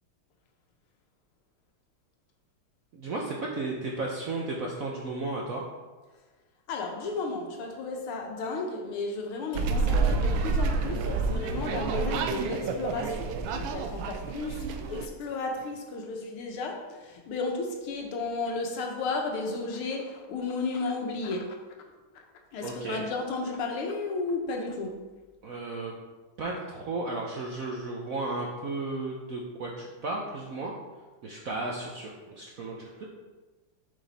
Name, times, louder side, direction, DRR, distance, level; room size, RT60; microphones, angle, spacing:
voice 1, 2.9-5.6 22.6-23.0 25.4-25.9 26.4-30.7 31.2-33.1, right 2 dB, 65° right, 0.8 m, -34 dB
voice 2, 6.7-21.6 22.1-22.2 22.5-25.1, left 3 dB, 80° left, 1.9 m, -33 dB
sound 1, 9.5-15.1, right 4 dB, 90° right, 1.5 m, -28 dB
7.3 x 5.1 x 4.1 m
omnidirectional pair, 2.4 m